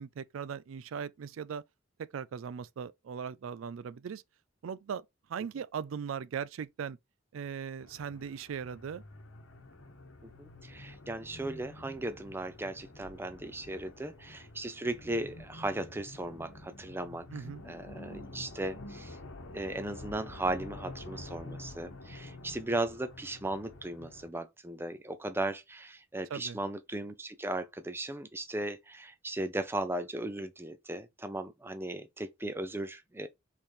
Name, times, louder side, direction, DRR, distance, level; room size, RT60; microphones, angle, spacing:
voice 1, 0.0-1.6 2.0-4.2 4.6-5.0 5.3-7.0 7.3-9.0 17.3-17.6 26.3-26.6, right 7 dB, 85° right, 0.4 m, -39 dB
sound 1, 7.8-24.3, left 2 dB, 80° left, 1.0 m, -48 dB
voice 2, 10.2-17.3 17.6-19.2 19.5-33.3, right 2 dB, 10° right, 0.6 m, -37 dB
4.5 x 3.6 x 3.1 m
head